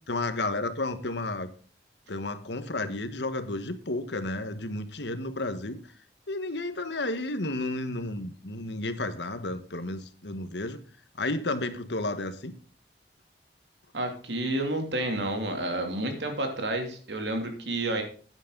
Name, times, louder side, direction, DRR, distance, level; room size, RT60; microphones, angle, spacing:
voice 1, 0.1-1.5 2.1-5.8 6.3-10.8 11.2-12.5, left 2 dB, 85° left, 11 dB, 1.3 m, -32 dB
voice 2, 13.9-18.0, right 1 dB, 85° right, 5 dB, 2.8 m, -30 dB
11.0 x 9.8 x 3.9 m, 0.42 s
head